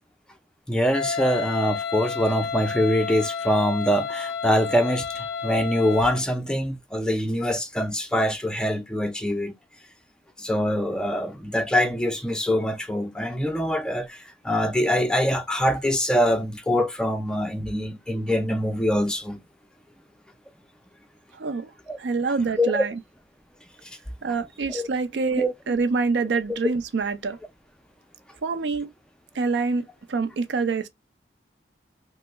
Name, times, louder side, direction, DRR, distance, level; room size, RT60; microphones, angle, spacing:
voice 1, 0.7-9.5 10.4-19.4 21.9-22.0 22.6-22.8 24.7-24.9 25.4-25.5, equal, 5° left, 0.3 m, -24 dB
Wind instrument woodwind instrument, 0.9-6.3, left 6 dB, 80° left, 0.4 m, -31 dB
voice 2, 21.4-21.7 22.0-23.0 24.2-27.4 28.4-28.9 29.4-30.9, right 4 dB, 80° right, 0.5 m, -26 dB
3.0 x 2.0 x 3.4 m
head